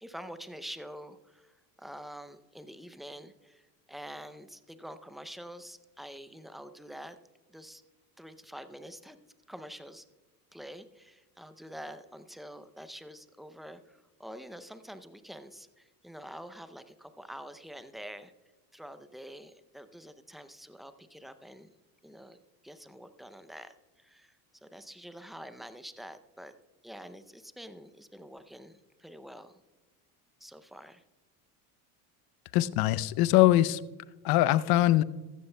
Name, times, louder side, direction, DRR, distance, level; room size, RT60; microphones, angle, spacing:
voice 1, 0.0-7.2 7.5-7.8 8.2-9.2 9.5-10.0 10.5-18.3 18.7-21.7 22.0-22.4 22.6-26.5 26.8-29.6 30.4-31.0 33.4-33.7, equal, ahead, 11 dB, 0.5 m, -47 dB
voice 2, 32.5-33.8 34.2-35.0, left 15 dB, 50° left, 17 dB, 0.6 m, -22 dB
15.0 x 13.0 x 2.2 m, 1.2 s
supercardioid pair, 105°, 47 cm